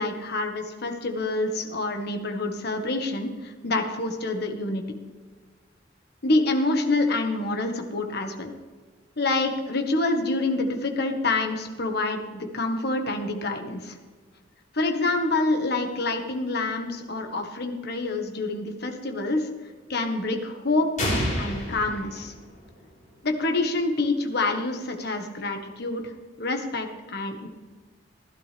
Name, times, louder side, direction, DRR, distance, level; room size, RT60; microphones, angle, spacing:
voice 1, 0.0-4.8 6.2-8.5 9.2-13.9 14.7-19.5 19.9-20.9 21.3-22.3 23.2-26.1 26.4-27.5, left 2 dB, 60° left, 4 dB, 1.5 m, -27 dB
sound 1, 21.0-22.9, equal, 40° left, 4.3 m, -29 dB
16.0 x 11.5 x 3.4 m, 1.4 s
head